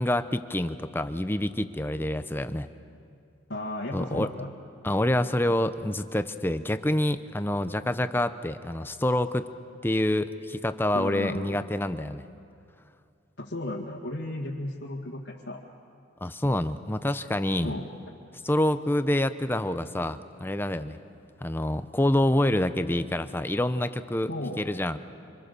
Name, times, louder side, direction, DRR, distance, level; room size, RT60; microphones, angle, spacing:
voice 1, 0.0-2.7 3.9-4.3 4.8-9.5 9.8-12.2 16.2-17.7 18.4-21.0 21.4-24.3 24.6-25.0, left 1 dB, 10° left, 11 dB, 0.6 m, -27 dB
voice 2, 3.5-4.5 10.9-11.6 13.4-15.6 17.6-17.9 24.3-24.6, left 1 dB, 65° left, -4 dB, 2.0 m, -34 dB
26.0 x 26.0 x 6.8 m, 2.4 s
head